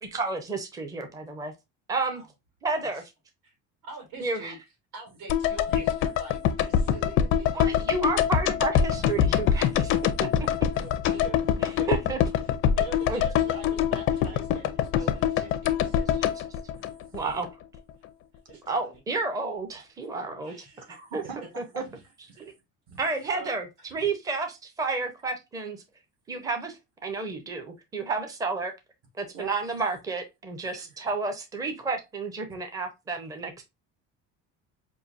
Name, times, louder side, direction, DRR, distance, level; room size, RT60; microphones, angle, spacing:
voice 1, 0.0-1.5 1.9-2.2 2.6-3.0 4.2-4.5 7.5-9.9 10.2-10.3 11.1-11.2 11.6-12.2 13.1-13.2 16.2-16.3 17.1-17.5 18.7-20.5 20.9-21.2 21.6-21.7 22.4-22.5 23.0-23.7 23.9-25.8 26.3-28.7 29.2-33.6, right 3 dB, 10° right, 0.6 m, -31 dB
voice 2, 3.8-4.6 4.9-8.1 10.8-11.9 12.8-16.3 18.5-19.0 20.4-21.0 22.3-22.5 23.3-23.5 23.8-23.9, right 4 dB, 75° right, 2.6 m, -45 dB
sound 1, 5.3-17.5 17.7-17.8, left 9 dB, 40° left, 0.4 m, -25 dB
voice 3, 5.7-6.2 8.9-9.4 9.7-10.0 10.4-10.9 16.7-17.2 20.9-21.4 22.3-22.4 22.9-23.0 29.3-29.5 30.7-31.0, right 5 dB, 50° right, 1.7 m, -44 dB
5.4 x 2.6 x 2.5 m
cardioid pair, 180°, 32 cm